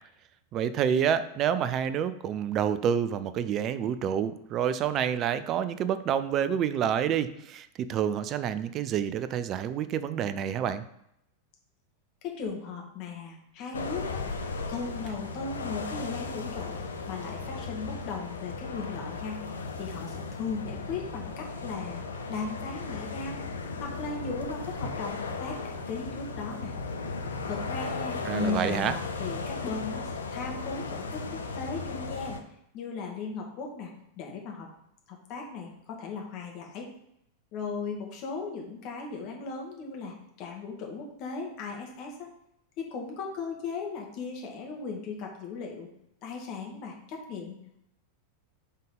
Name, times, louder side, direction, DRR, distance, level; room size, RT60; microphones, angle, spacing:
voice 1, 0.5-10.8 28.2-28.9, right 8 dB, 35° right, 13 dB, 0.4 m, -28 dB
voice 2, 12.2-14.2 14.7-16.8 17.1-19.4 19.8-22.0 22.3-23.4 23.8-26.7 27.5-32.4 32.7-33.9 34.2-34.7 35.1-36.9 37.5-42.3 42.8-45.9 46.2-47.6, left 4 dB, 40° left, 1 dB, 1.6 m, -37 dB
sound 1, 13.7-32.4, left 4 dB, 70° left, 0.7 m, -36 dB
5.5 x 3.7 x 5.3 m, 0.77 s
figure-of-eight pair, 90°, 0 cm